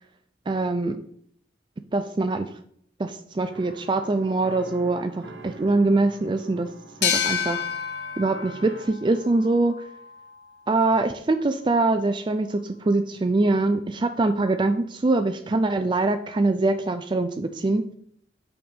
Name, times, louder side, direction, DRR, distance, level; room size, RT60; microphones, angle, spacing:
voice 1, 0.5-1.0 1.9-2.5 3.0-6.7 7.0-7.6 8.2-9.7 10.7-17.8, right 2 dB, 25° right, 8 dB, 0.4 m, -23 dB
sound 1, 3.5-8.9, right 2 dB, 90° right, 1.1 m, -45 dB
sound 2, 7.0-10.4, left 7 dB, 70° left, 0.7 m, -29 dB
8.7 x 6.4 x 3.6 m, 0.66 s
head